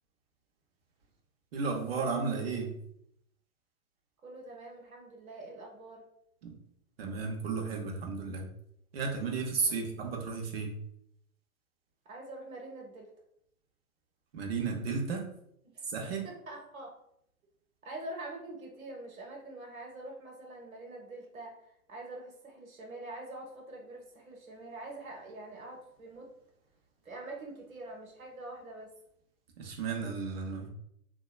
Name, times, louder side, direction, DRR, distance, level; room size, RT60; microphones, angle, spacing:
voice 1, 1.5-2.8 6.4-6.5 7.0-8.5 8.9-10.7 14.3-15.3 15.8-16.3 29.6-30.7, right 4 dB, 45° right, 2 dB, 0.7 m, -33 dB
voice 2, 4.2-6.0 9.7-10.0 12.0-13.1 15.7-15.8 16.2-16.9 17.8-21.5 21.9-26.3 27.0-28.9, right 2 dB, 70° right, 0 dB, 1.0 m, -45 dB
2.8 x 2.2 x 2.2 m, 0.74 s
figure-of-eight pair, 115°, 43 cm